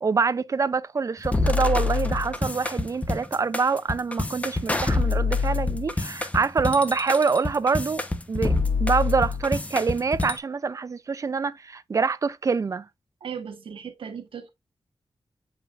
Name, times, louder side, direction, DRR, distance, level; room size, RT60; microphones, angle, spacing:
voice 1, 0.0-12.9, right 5 dB, 40° right, 0.5 m, -25 dB
sound 1, 1.2-10.4, left 3 dB, 15° left, 0.8 m, -26 dB
voice 2, 13.2-14.5, right 7 dB, 90° right, 1.3 m, -37 dB
8.2 x 5.1 x 2.4 m
wide cardioid pair, 140°, 9 cm